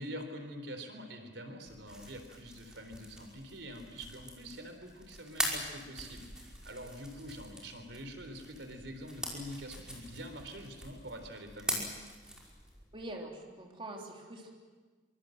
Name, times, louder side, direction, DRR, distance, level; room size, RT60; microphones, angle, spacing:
voice 1, 0.0-11.9, equal, 90° right, 6 dB, 3.9 m, -45 dB
sound 1, 1.7-12.8, equal, 5° right, 5.3 m, -42 dB
voice 2, 12.9-14.5, right 1 dB, 30° right, 0 dB, 3.5 m, -44 dB
25.0 x 25.0 x 7.9 m, 1.4 s
head